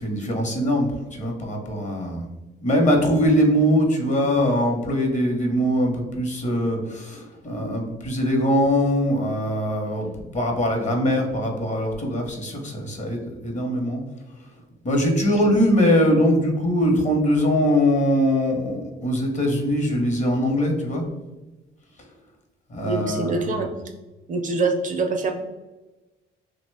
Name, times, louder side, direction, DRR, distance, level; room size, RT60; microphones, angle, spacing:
voice 1, 0.0-2.3 2.6-10.1 10.3-14.0 14.8-21.1 22.7-23.4, equal, 35° left, 2 dB, 0.7 m, -22 dB
voice 2, 22.8-23.7 24.3-25.3, right 3 dB, 40° right, 5 dB, 0.4 m, -24 dB
2.8 x 2.1 x 3.2 m, 1.1 s
cardioid pair, 90°, 20 cm